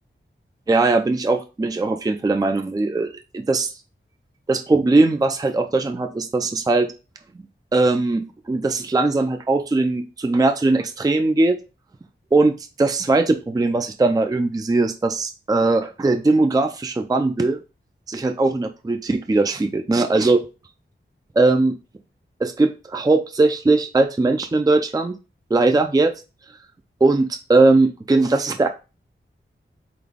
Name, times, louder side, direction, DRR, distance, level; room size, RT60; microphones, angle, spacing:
voice 1, 0.7-3.7 4.5-6.9 7.7-11.6 12.3-12.5 12.8-17.6 18.1-20.4 21.4-21.7 22.4-25.2 25.5-26.1 27.0-28.7, right 3 dB, 20° right, 6 dB, 0.4 m, -19 dB
3.9 x 3.8 x 3.5 m, 0.31 s
wide cardioid pair, 70°, 21 cm